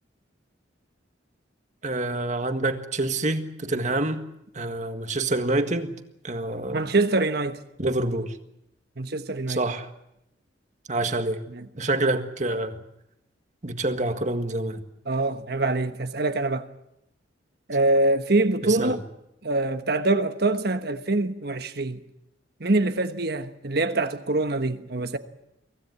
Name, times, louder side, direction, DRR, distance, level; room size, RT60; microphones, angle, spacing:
voice 1, 1.8-4.2 4.5-5.9 6.2-6.9 7.8-8.3 9.5-9.9 10.9-11.4 11.8-12.8 13.6-14.9 18.6-19.0, right 2 dB, 40° right, 1.7 m, -27 dB
voice 2, 6.7-7.6 9.0-9.6 11.5-11.7 15.1-16.7 17.7-19.0 19.4-22.0 22.6-25.2, right 2 dB, 55° right, 1.3 m, -24 dB
24.5 x 16.5 x 9.6 m
head